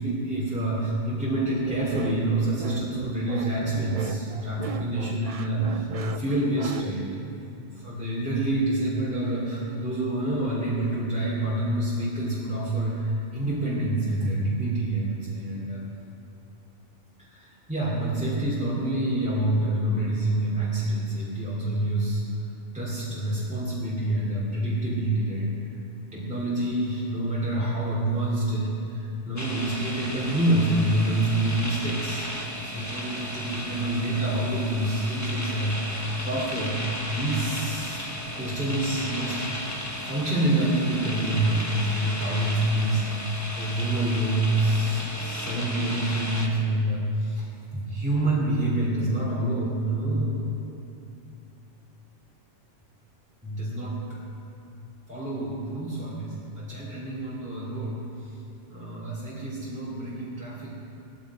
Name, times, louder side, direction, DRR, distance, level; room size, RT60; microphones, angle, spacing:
voice 1, 0.0-15.9 17.2-22.2 22.7-25.5 26.1-38.1 38.4-39.4 40.0-43.0 43.6-50.4 53.4-54.2 55.1-58.0 58.7-60.8, right 1 dB, 5° right, -9 dB, 2.7 m, -27 dB
sound 1, 1.6-6.8, right 4 dB, 50° right, 0.4 m, -35 dB
sound 2, 29.4-46.5, equal, 15° left, 1.2 m, -35 dB
16.5 x 13.0 x 4.8 m, 2.7 s
omnidirectional pair, 1.2 m